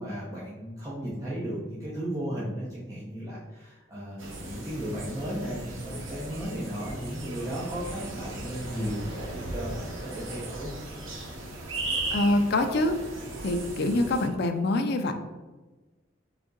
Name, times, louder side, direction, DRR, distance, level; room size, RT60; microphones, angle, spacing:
voice 1, 0.0-10.8, equal, 15° right, -9 dB, 0.9 m, -35 dB
sound 1, 4.2-14.3, right 2 dB, 90° right, 0.9 m, -37 dB
voice 2, 12.1-12.9 13.4-15.1, left 2 dB, 55° left, 6 dB, 0.4 m, -25 dB
4.0 x 3.5 x 3.7 m, 1.2 s
head